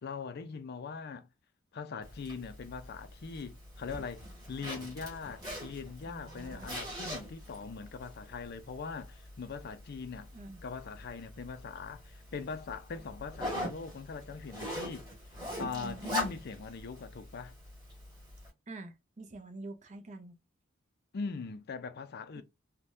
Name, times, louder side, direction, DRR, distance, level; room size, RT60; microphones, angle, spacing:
voice 1, 0.0-1.3 1.7-4.2 4.5-10.3 10.6-15.1 15.6-17.5 21.1-22.4, left 5 dB, 55° left, 0.5 m, -41 dB
Zipper (clothing), 2.0-18.5, left 1 dB, 20° right, 1.7 m, -43 dB
voice 2, 6.1-6.7 10.3-10.6 15.6-16.0 18.7-20.4 22.4-22.5, right 2 dB, 40° right, 0.6 m, -46 dB
3.4 x 2.2 x 2.6 m
head